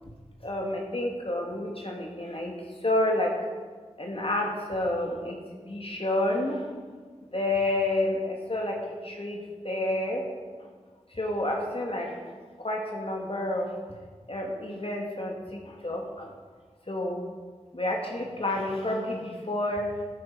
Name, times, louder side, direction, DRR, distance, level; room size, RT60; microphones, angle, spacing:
voice 1, 0.4-2.6 2.8-3.3 4.0-5.4 5.7-6.7 7.3-9.4 9.6-10.2 11.1-12.1 12.6-13.7 14.3-16.3 16.9-17.2 17.7-19.9, left 1 dB, 50° left, 0 dB, 2.5 m, -29 dB
14.0 x 9.5 x 5.5 m, 1.5 s
wide cardioid pair, 40°, 12 cm